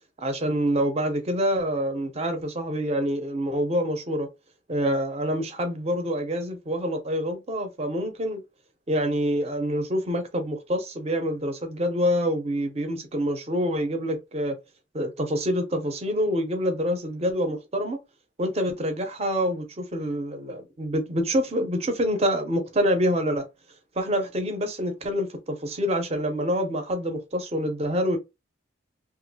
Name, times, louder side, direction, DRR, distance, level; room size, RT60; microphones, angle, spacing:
voice 1, 0.2-4.3 4.7-8.4 8.9-14.6 14.9-18.0 18.4-23.5 24.0-28.2, equal, 35° right, 0.6 m, -26 dB
2.9 x 2.5 x 2.7 m
head